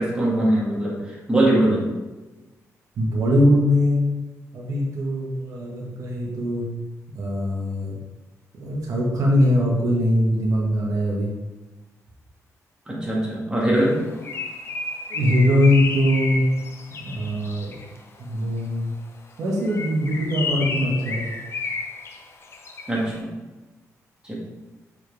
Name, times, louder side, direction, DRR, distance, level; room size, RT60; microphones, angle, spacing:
voice 1, 0.0-1.8 12.9-14.0 22.9-23.3 24.2-24.3, right 1 dB, 15° right, -4 dB, 1.9 m, -21 dB
voice 2, 3.0-4.0 4.5-6.6 7.1-7.9 8.6-11.3 15.1-16.4 17.0-17.7 18.2-18.9 19.4-21.3, left 1 dB, 70° right, -3 dB, 1.5 m, -21 dB
Bird, 13.9-18.0 19.6-23.1, left 4 dB, 45° left, 0.8 m, -32 dB
6.8 x 4.5 x 3.5 m, 1.1 s
cardioid pair, 115°, 6 cm